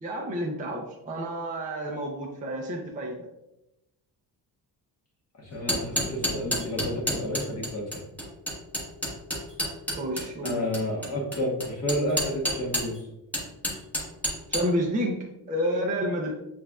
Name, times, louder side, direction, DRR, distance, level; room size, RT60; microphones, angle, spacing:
voice 1, 0.0-3.3 10.0-10.6 14.5-16.3, equal, 20° right, -1 dB, 0.5 m, -30 dB
voice 2, 5.4-8.1 10.4-13.1, left 1 dB, 40° left, -2 dB, 1.3 m, -30 dB
sound 1, 5.5-13.0 13.3-14.6, equal, 5° left, 1.0 m, -29 dB
7.5 x 2.5 x 2.3 m, 0.90 s
wide cardioid pair, 160°, 39 cm